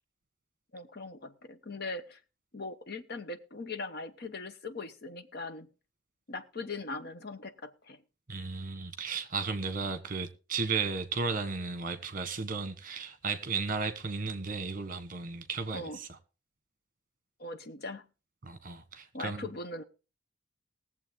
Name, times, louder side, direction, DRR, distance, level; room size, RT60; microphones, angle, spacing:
voice 1, 0.7-2.2 2.5-5.7 6.3-8.0 15.7-16.0 17.4-18.0 19.1-19.8, left 3 dB, 50° left, 0.9 m, -40 dB
voice 2, 8.3-16.1 18.4-19.5, right 4 dB, 40° right, 1.3 m, -34 dB
20.5 x 7.4 x 3.7 m
head